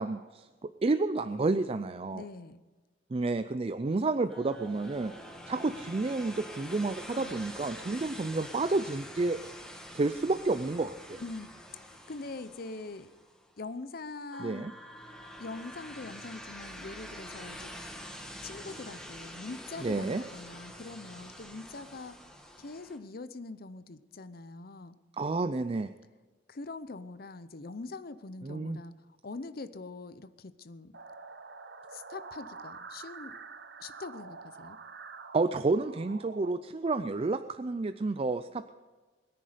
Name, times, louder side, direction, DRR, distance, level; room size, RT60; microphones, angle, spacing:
voice 1, 0.0-2.2 3.1-5.1 5.5-9.4 9.9-11.2 14.4-14.7 19.8-20.2 25.2-25.9 28.4-28.8 35.3-38.7, right 3 dB, 30° right, 11 dB, 0.4 m, -30 dB
voice 2, 2.1-2.6 7.1-7.4 11.2-13.1 13.6-14.7 15.4-17.7 18.4-22.1 22.6-25.0 26.5-31.0 31.9-33.4 33.8-34.8, left 3 dB, 55° left, 13 dB, 0.7 m, -43 dB
sound 1, 4.3-13.5 14.3-23.0, equal, 5° left, 1.5 m, -46 dB
sound 2, 30.9-36.5, right 4 dB, 60° right, 0.9 m, -47 dB
21.5 x 10.0 x 5.1 m, 1.3 s
head